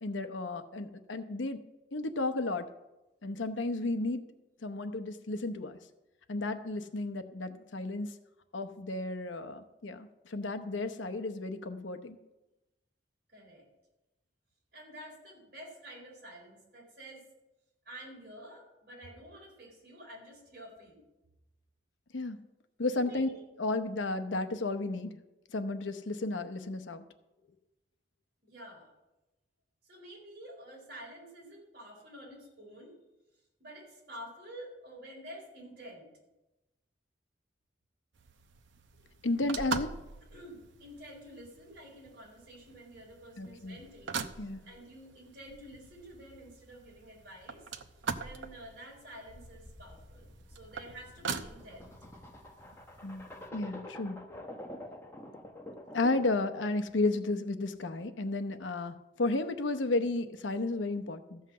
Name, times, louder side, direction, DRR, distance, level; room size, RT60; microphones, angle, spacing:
voice 1, 0.0-1.6 1.9-2.7 3.2-4.3 4.6-5.8 6.3-8.1 8.5-12.2 22.1-22.4 22.8-25.2 25.5-27.0 39.2-40.0 43.4-43.8 44.4-44.6 53.0-53.3 53.5-54.5 55.9-61.4, left 2 dB, 90° left, 9 dB, 0.8 m, -33 dB
voice 2, 13.3-13.6 14.7-17.3 17.8-21.0 23.0-23.4 28.4-28.9 29.8-33.0 33.6-36.1 40.3-47.6 48.2-51.9, equal, 55° right, -2 dB, 4.4 m, -49 dB
sound 1, 38.1-53.5, right 5 dB, 85° right, 0.7 m, -43 dB
sound 2, 49.3-56.4, left 1 dB, 15° left, 1.1 m, -48 dB
14.0 x 5.7 x 7.6 m, 1.0 s
head